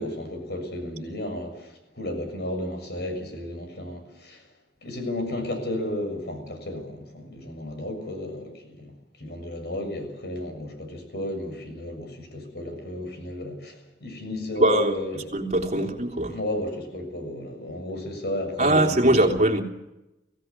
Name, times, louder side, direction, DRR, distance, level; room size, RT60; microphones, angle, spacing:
voice 1, 0.0-4.4 4.8-8.9 9.2-15.2 15.8-15.9 16.3-19.3, left 1 dB, 65° left, 6.9 m, -33 dB
voice 2, 14.6-14.9 15.3-16.4 18.6-19.6, right 1 dB, 40° right, 3.2 m, -21 dB
24.0 x 16.5 x 9.8 m
head